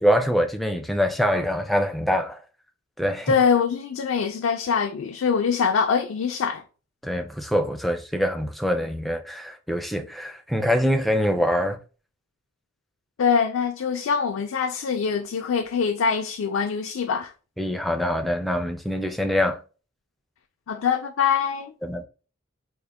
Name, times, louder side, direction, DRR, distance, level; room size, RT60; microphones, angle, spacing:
voice 1, 0.0-2.4 3.0-3.4 7.0-11.8 17.6-19.6 21.8-22.0, equal, ahead, 0.4 m, -24 dB
voice 2, 3.3-6.6 13.2-17.3 20.7-21.7, left 6 dB, 70° left, 0.4 m, -23 dB
3.6 x 2.1 x 3.4 m
head